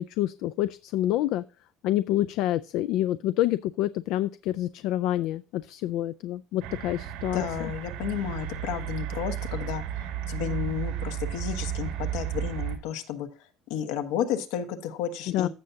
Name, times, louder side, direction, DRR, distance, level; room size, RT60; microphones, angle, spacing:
voice 1, 0.0-1.4 1.8-7.7 15.3-15.5, left 13 dB, 60° left, 14 dB, 0.3 m, -27 dB
sound 1, 6.6-12.8, right 10 dB, 85° right, 2.0 m, -33 dB
voice 2, 7.3-13.3 13.7-15.5, left 9 dB, 85° left, 7 dB, 1.3 m, -32 dB
15.0 x 5.6 x 2.7 m, 0.34 s
cardioid pair, 160°, 0 cm